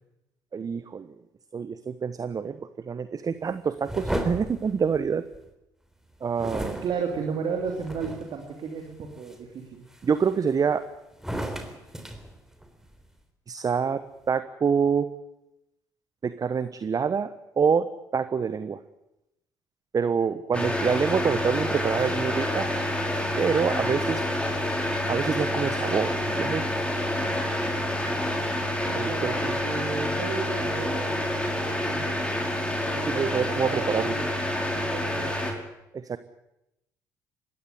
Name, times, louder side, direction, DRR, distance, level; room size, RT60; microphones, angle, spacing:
voice 1, 0.5-1.2 1.5-5.2 6.2-6.8 10.0-10.8 13.5-15.1 16.2-18.8 19.9-22.7 23.4-24.2 25.1-26.7 29.0-29.6 33.1-34.1 35.9-36.2, right 6 dB, 40° right, 12 dB, 1.2 m, -26 dB
sound 1, 3.8-5.5 6.4-8.4 9.0-9.4 9.9-10.7 11.1-13.0, right 1 dB, 5° right, 3.8 m, -35 dB
voice 2, 6.8-9.8 28.9-32.2 32.8-34.2 34.7-35.6, right 5 dB, 55° right, 3 dB, 3.0 m, -34 dB
sound 2, 20.5-35.5, left 1 dB, 10° left, 4.8 m, -28 dB
20.0 x 16.0 x 9.9 m, 0.87 s
hypercardioid pair, 50°, 10 cm